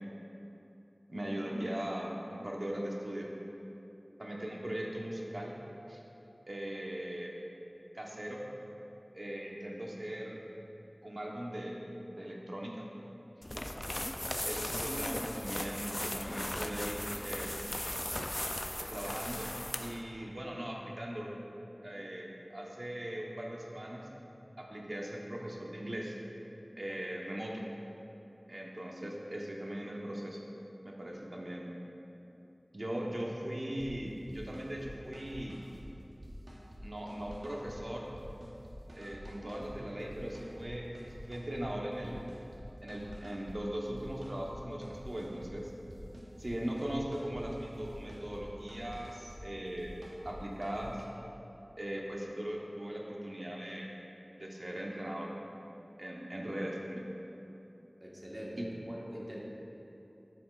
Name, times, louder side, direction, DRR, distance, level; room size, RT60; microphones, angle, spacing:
voice 1, 1.1-3.3 4.2-5.5 5.9-6.0 6.5-7.3 7.9-8.4 9.1-10.4 11.0-12.8 14.4-17.6 18.9-19.5 19.8-21.3 21.8-24.1 24.6-26.2 26.8-27.6 28.5-30.4 30.8-31.8 32.7-35.6 36.8-38.1 38.9-42.2 42.8-45.7 46.4-49.9 50.2-51.0 51.8-53.9 54.4-55.3 56.0-57.1 58.6-58.7, equal, 55° right, -2 dB, 1.0 m, -39 dB
sound 1, 13.4-20.0, left 1 dB, 35° left, 0.4 m, -37 dB
sound 2, 33.8-33.9 34.3-34.9 35.1-35.8 36.2-36.8 37.1-37.8 38.2-39.7 40.1-40.7 40.9-41.7 41.9-42.6 42.9-43.6 44.0-44.6 44.8-45.5 45.9-46.5 46.8-48.4 48.7-49.4 49.8-50.4 50.6-51.0, equal, 80° right, 1.1 m, -49 dB
voice 2, 58.0-59.4, equal, 35° right, -5 dB, 1.4 m, -43 dB
10.0 x 6.9 x 2.4 m, 3.0 s
wide cardioid pair, 45°, 0 cm